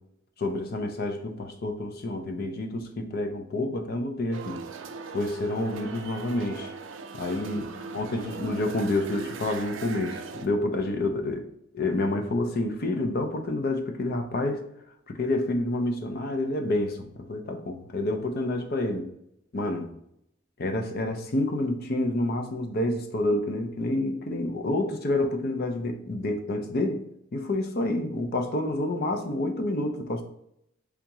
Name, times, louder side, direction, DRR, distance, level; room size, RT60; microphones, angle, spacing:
voice 1, 0.4-4.6 5.1-6.7 7.1-7.6 7.9-11.4 11.7-14.6 15.1-19.1 19.5-19.9 20.6-27.0 27.3-30.2, left 2 dB, 45° left, 5 dB, 0.5 m, -28 dB
sound 1, 4.3-10.5, right 4 dB, 60° right, 0.4 m, -39 dB
3.6 x 3.5 x 2.9 m, 0.76 s
head